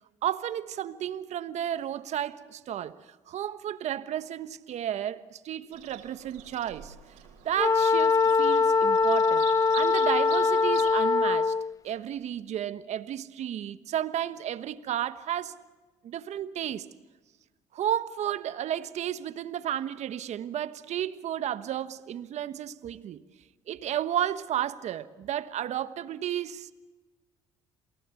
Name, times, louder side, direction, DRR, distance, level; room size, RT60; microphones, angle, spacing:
voice 1, 0.2-3.0 3.3-6.9 7.4-9.5 9.7-11.5 11.8-15.6 16.0-16.9 17.7-23.2 23.7-26.7, right 11 dB, 65° right, 1.3 m, -32 dB
Bird vocalization bird call bird song, 5.7-11.0, right 9 dB, 85° right, 3.8 m, -46 dB
Wind instrument woodwind instrument, 7.6-11.7, left 4 dB, 25° left, 0.7 m, -23 dB
28.5 x 18.0 x 8.4 m
supercardioid pair, 70°, 13 cm